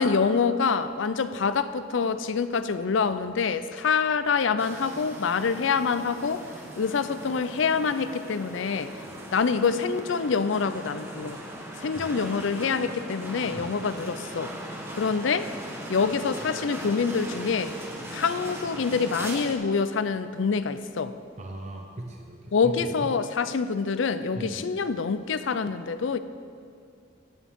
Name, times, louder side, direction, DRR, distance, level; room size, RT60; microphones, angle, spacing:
voice 1, 0.0-6.5 6.8-8.9 9.3-11.4 11.8-14.5 14.9-15.5 15.9-17.7 18.1-21.1 22.5-26.2, left 5 dB, 70° left, 12 dB, 0.5 m, -26 dB
sound 1, 4.6-19.5, right 1 dB, 15° right, 1.2 m, -39 dB
voice 2, 21.4-23.1 24.3-24.7, right 1 dB, 35° right, 2 dB, 0.8 m, -38 dB
15.0 x 9.9 x 3.6 m, 2.4 s
head